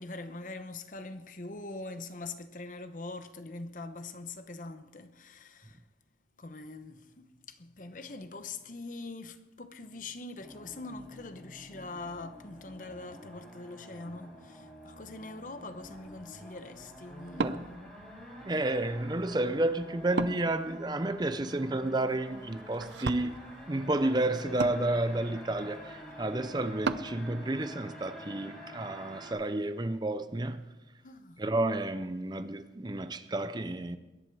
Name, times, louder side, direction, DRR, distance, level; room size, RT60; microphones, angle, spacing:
voice 1, 0.0-5.8 6.4-17.7 31.0-31.4, left 3 dB, 45° left, 0.9 m, -43 dB
sound 1, 10.4-29.3, equal, 5° left, 6.9 m, -48 dB
Wood, 15.7-27.2, right 4 dB, 85° right, 0.6 m, -40 dB
voice 2, 18.4-23.4 23.7-30.6 31.4-34.0, right 2 dB, 25° right, 0.6 m, -31 dB
21.0 x 11.0 x 4.8 m
head